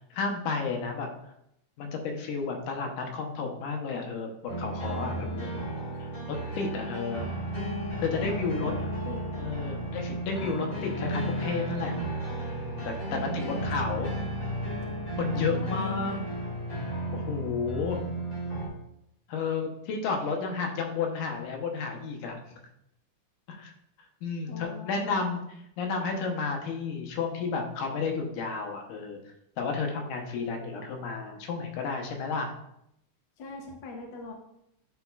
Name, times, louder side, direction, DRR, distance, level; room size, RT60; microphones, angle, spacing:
voice 1, 0.1-1.1 1.8-5.5 6.0-7.2 8.0-8.7 9.4-12.0 12.4-14.2 15.2-16.2 17.1-18.1 19.3-22.4 23.5-23.7 24.2-25.4 25.8-29.2 29.6-32.5, left 4 dB, 85° left, 2 dB, 2.4 m, -32 dB
sound 1, 4.5-18.7, right 1 dB, 20° left, 1.1 m, -33 dB
voice 2, 8.2-8.7 9.0-9.3 9.6-9.8 13.1-14.1 15.3-16.2 17.6-18.5 24.5-25.1 33.4-34.3, left 3 dB, 65° left, 1 dB, 1.2 m, -42 dB
10.0 x 4.1 x 2.3 m, 0.77 s
omnidirectional pair, 3.5 m